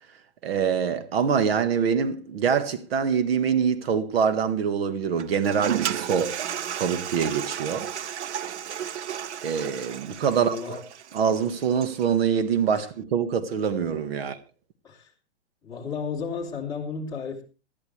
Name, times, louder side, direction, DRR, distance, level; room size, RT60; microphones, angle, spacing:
voice 1, 0.4-6.4 6.7-7.9 9.4-10.8 11.1-14.4, right 7 dB, 60° right, 1.6 m, -25 dB
Toilet flush, 5.2-12.1, right 9 dB, 90° right, 0.9 m, -33 dB
voice 2, 10.3-10.8 12.7-12.8 14.8-15.1 15.6-17.4, left 5 dB, 10° left, 3.3 m, -33 dB
19.5 x 13.0 x 3.3 m
hypercardioid pair, 160°, 33 cm